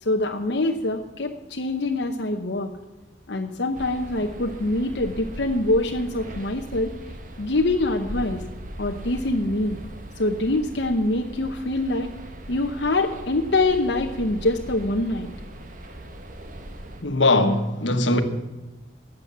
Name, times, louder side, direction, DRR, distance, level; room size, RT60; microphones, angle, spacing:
voice 1, 0.0-2.7 3.3-6.9 7.4-8.4 8.8-9.8 10.2-12.1 12.5-15.3, left 2 dB, 65° left, 0.9 m, -24 dB
sound 1, 3.7-17.0, right 1 dB, 45° right, 1.3 m, -39 dB
voice 2, 17.0-18.2, left 2 dB, 90° left, 1.4 m, -20 dB
14.0 x 7.7 x 8.5 m
head